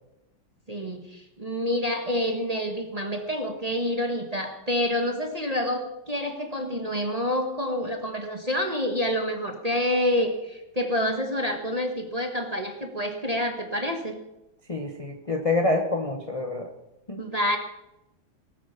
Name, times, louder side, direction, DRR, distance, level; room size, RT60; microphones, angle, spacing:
voice 1, 0.7-14.2 17.2-17.6, left 1 dB, 25° right, 4 dB, 1.1 m, -28 dB
voice 2, 14.7-16.7 17.1-17.2, left 2 dB, 25° left, 3 dB, 0.7 m, -27 dB
19.0 x 8.5 x 5.8 m, 0.94 s
omnidirectional pair, 2.2 m